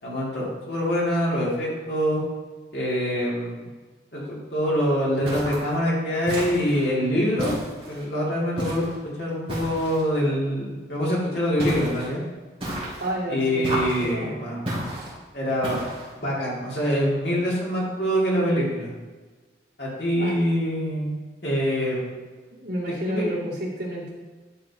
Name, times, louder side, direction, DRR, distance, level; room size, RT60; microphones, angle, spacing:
voice 1, 0.0-2.2 2.7-3.7 4.1-7.5 7.9-8.8 9.2-12.2 13.3-14.6 15.3-15.8 16.2-18.9 19.8-21.1 21.4-22.1 23.1-23.3, equal, 65° left, -5 dB, 2.5 m, -25 dB
sound 1, 5.2-5.7 6.3-6.8 7.4-8.0 8.6-9.0 9.5-10.0 11.6-12.1 12.6-13.1 13.6-14.1 14.6-15.1 15.6-16.1, right 1 dB, 30° right, 2.8 m, -32 dB
voice 2, 13.0-14.4 20.2-20.4 22.5-24.1, right 1 dB, 75° right, -6 dB, 2.5 m, -30 dB
11.0 x 6.1 x 2.9 m, 1.3 s
head